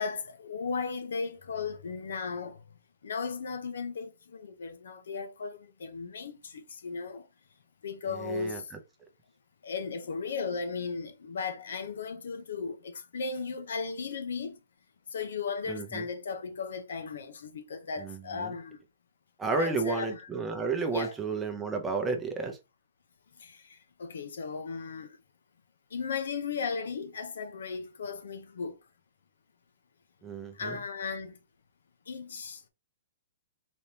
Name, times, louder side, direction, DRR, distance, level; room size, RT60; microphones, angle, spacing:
voice 1, 0.0-2.6 3.0-7.3 7.8-8.7 9.6-14.6 15.1-18.8 19.6-20.3 20.9-21.1 23.4-25.2 25.9-28.8 30.5-31.4 32.1-32.7, left 5 dB, 75° left, 0.9 m, -36 dB
voice 2, 8.1-8.6 15.7-16.1 18.0-18.5 19.4-22.6 30.2-30.8, right 4 dB, 5° right, 0.7 m, -32 dB
4.3 x 3.5 x 2.8 m
hypercardioid pair, 180°, 0 cm